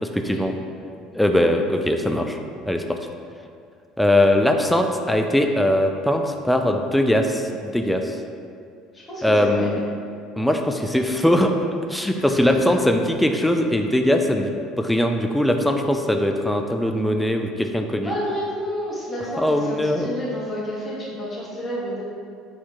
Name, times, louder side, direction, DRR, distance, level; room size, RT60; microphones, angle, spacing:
voice 1, 0.0-0.6 1.1-2.4 2.7-3.0 4.0-8.2 9.2-9.8 10.4-11.5 11.9-18.1 19.4-20.1, left 1 dB, 5° left, 4 dB, 0.3 m, -21 dB
voice 2, 8.9-9.7 12.1-12.7 17.9-22.0, equal, 30° left, -6 dB, 1.4 m, -30 dB
4.5 x 2.9 x 3.5 m, 2.3 s
figure-of-eight pair, 60°, 0 cm